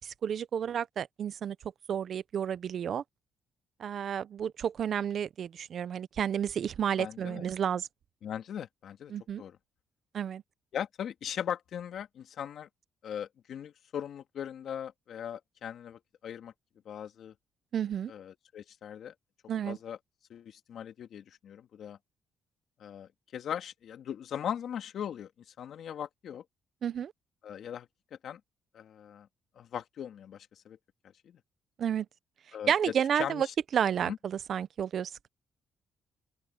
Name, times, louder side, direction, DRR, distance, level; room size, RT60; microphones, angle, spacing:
voice 1, 0.0-1.6 1.9-3.0 3.8-7.9 9.1-9.4 10.1-10.4 17.7-18.1 19.5-19.8 26.8-27.1 31.8-32.1 32.7-33.5 33.7-35.3, right 8 dB, 60° right, 0.8 m, -31 dB
voice 2, 7.0-7.5 8.2-9.6 10.7-12.7 13.0-16.5 16.8-17.3 18.1-19.1 19.7-20.0 20.3-22.0 22.8-26.4 27.4-28.4 28.7-29.3 29.6-30.8 31.2-31.4 32.5-33.5 34.0-34.2, left 9 dB, 65° left, 2.4 m, -39 dB
open air
cardioid pair, 90°, 0 cm